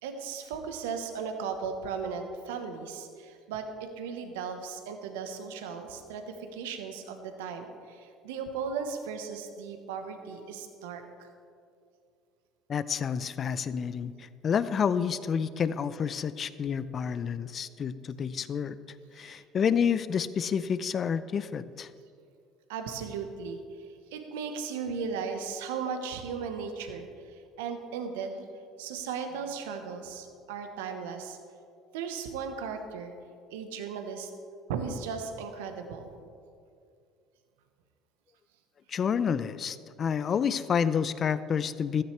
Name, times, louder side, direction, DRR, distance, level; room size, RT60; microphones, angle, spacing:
voice 1, 0.0-11.3 19.2-19.4 22.7-23.6 24.1-27.1 27.6-28.4 28.8-31.4 31.9-33.1 33.5-34.3 34.7-36.1, right 6 dB, 80° right, 6 dB, 1.1 m, -36 dB
voice 2, 12.7-18.8 19.2-21.9 38.9-42.0, left 7 dB, 45° left, 15 dB, 0.6 m, -29 dB
15.5 x 13.0 x 3.3 m, 2.4 s
hypercardioid pair, 65°, 0 cm